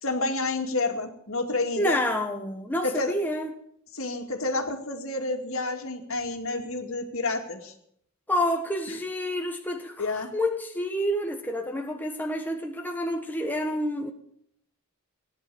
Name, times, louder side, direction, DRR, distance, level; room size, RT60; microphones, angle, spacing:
voice 1, 0.0-2.0 2.8-3.1 3.9-7.7 10.0-10.3, left 2 dB, 65° left, 2.4 m, -29 dB
voice 2, 1.8-3.5 8.3-14.1, left 1 dB, 10° left, 1.2 m, -28 dB
17.5 x 10.5 x 7.0 m
head